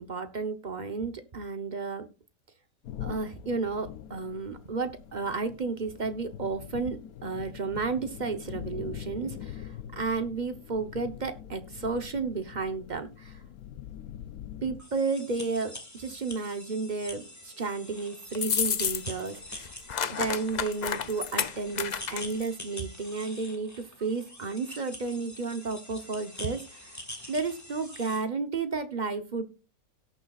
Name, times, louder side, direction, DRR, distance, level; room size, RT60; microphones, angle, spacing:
voice 1, 0.0-2.1 3.0-13.4 14.6-19.7 20.1-23.7 24.0-27.0 27.3-29.5, right 4 dB, 40° right, 9 dB, 0.8 m, -32 dB
sound 1, 2.8-14.8, left 10 dB, 90° left, 1.1 m, -43 dB
sound 2, 14.8-28.2, left 1 dB, 10° left, 1.7 m, -45 dB
sound 3, 18.3-19.3 19.5-22.5, left 7 dB, 60° left, 0.4 m, -30 dB
17.5 x 6.7 x 2.3 m, 0.31 s
omnidirectional pair, 1.5 m